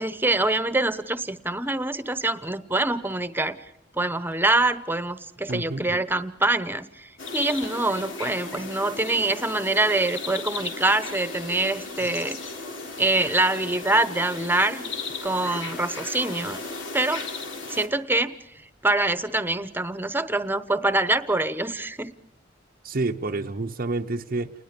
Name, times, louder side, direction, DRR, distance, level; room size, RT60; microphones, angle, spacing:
voice 1, 0.0-12.4 13.0-14.9 15.2-16.6 16.9-17.3 17.7-18.4 18.8-22.1, right 2 dB, 10° right, 13 dB, 1.0 m, -25 dB
sound 1, 3.1-3.4 4.3-4.4 4.6-4.7 5.4-5.7 6.4-6.6 7.1-7.2 7.6-7.9, left 1 dB, 50° left, 4.6 m, -50 dB
voice 2, 5.5-5.9 22.8-24.5, right 3 dB, 50° right, 2 dB, 0.7 m, -28 dB
sound 2, 7.2-17.9, left 3 dB, 90° left, 3.3 m, -36 dB
29.5 x 20.5 x 5.2 m, 0.82 s
head